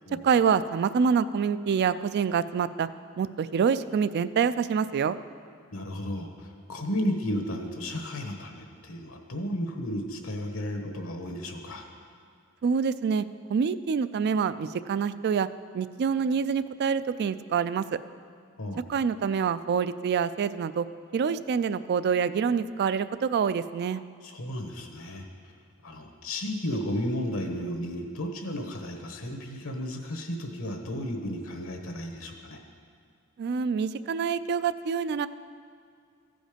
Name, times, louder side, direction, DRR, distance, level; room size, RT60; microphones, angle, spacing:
voice 1, 0.2-2.9 3.2-5.2 12.6-13.3 13.5-15.5 15.7-18.0 18.9-20.9 21.1-24.0 33.4-35.3, right 6 dB, 50° right, 15 dB, 0.3 m, -26 dB
voice 2, 5.7-11.9 18.6-18.8 24.2-25.2 25.8-32.6, equal, 70° left, 4 dB, 1.2 m, -33 dB
15.0 x 5.2 x 5.1 m, 2.3 s
head